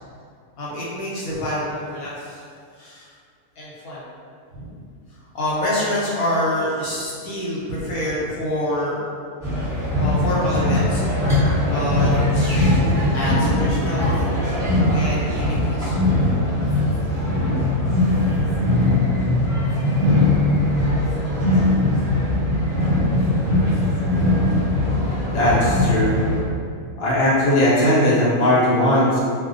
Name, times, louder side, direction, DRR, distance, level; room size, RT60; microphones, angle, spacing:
voice 1, 0.6-2.4 2.8-3.1 3.6-4.1 4.5-4.8 5.3-9.0 10.0-11.3 11.6-14.3 14.6-16.0, left 1 dB, 80° left, -7 dB, 1.1 m, -27 dB
sound 1, 9.4-26.4, left 1 dB, 5° left, 0.8 m, -20 dB
voice 2, 25.3-26.2 27.0-29.2, left 1 dB, 65° left, -8 dB, 0.7 m, -18 dB
2.4 x 2.1 x 2.5 m, 2.2 s
omnidirectional pair, 1.6 m